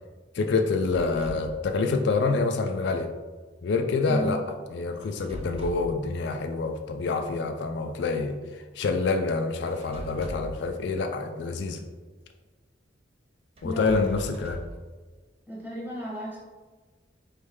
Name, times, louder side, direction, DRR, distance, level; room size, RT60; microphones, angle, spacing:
voice 1, 0.3-3.1 3.6-4.4 4.7-11.8 13.6-14.6, left 4 dB, 65° left, 5 dB, 0.3 m, -27 dB
sound 1, 0.8-1.6 5.0-6.0 9.7-10.6 13.6-14.8, equal, 30° right, 0.5 m, -40 dB
voice 2, 4.1-4.4 13.6-14.1 15.5-16.4, right 1 dB, 10° right, -6 dB, 1.2 m, -34 dB
4.2 x 3.2 x 3.6 m, 1.4 s
head